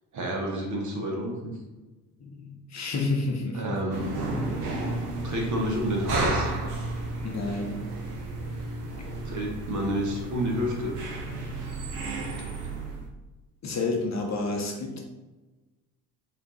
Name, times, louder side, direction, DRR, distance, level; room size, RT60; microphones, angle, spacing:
voice 1, 0.1-1.5 3.5-4.1 5.2-6.5 9.2-11.0, equal, 40° right, 0 dB, 1.3 m, -29 dB
voice 2, 2.2-3.8 7.2-7.9 12.5-12.6 13.6-15.0, left 3 dB, 35° left, 1 dB, 0.9 m, -30 dB
sound 1, 3.9-13.1, right 2 dB, 80° right, 0.8 m, -33 dB
4.3 x 2.7 x 3.9 m, 1.1 s
figure-of-eight pair, 45°, 46 cm